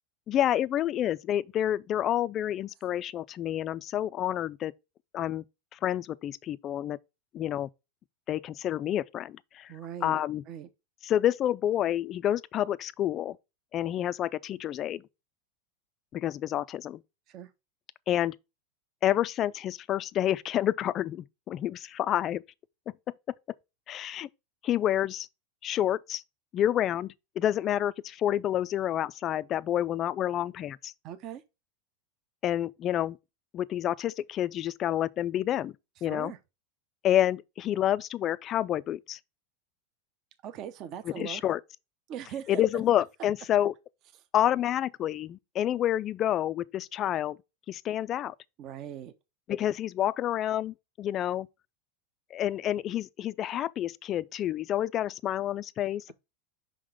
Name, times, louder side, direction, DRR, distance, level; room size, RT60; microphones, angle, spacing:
voice 1, 0.3-4.7 5.1-5.4 5.7-7.0 7.3-7.7 8.3-9.7 10.0-10.4 11.0-13.4 13.7-15.0 16.1-17.0 18.1-18.4 19.0-22.4 23.9-24.3 24.6-25.3 25.6-26.2 26.5-30.9 32.4-33.2 33.5-35.7 36.0-36.3 37.0-39.2 41.1-41.6 42.5-43.7 44.3-47.4 47.7-48.3 49.5-51.5 52.3-56.1, left 11 dB, 30° left, 0.3 m, -29 dB
voice 2, 9.7-10.7 17.3-17.5 31.0-31.4 36.0-36.4 40.4-41.4 42.1-42.6 48.6-49.1, right 9 dB, 40° right, 0.6 m, -40 dB
5.8 x 3.8 x 4.8 m
supercardioid pair, 150°, 0 cm